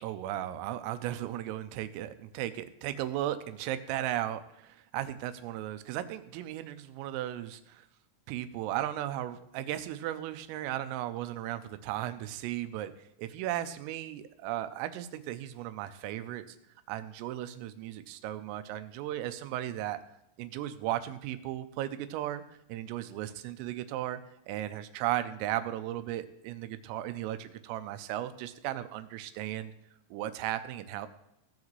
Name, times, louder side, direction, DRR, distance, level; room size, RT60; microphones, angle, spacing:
voice 1, 0.0-7.9 8.3-12.9 13.2-16.6 16.9-20.0 20.4-22.4 22.7-24.2 24.5-29.7 30.1-31.1, right 13 dB, 85° right, 11 dB, 3.3 m, -36 dB
17.0 x 7.3 x 3.1 m, 0.82 s
omnidirectional pair, 5.8 m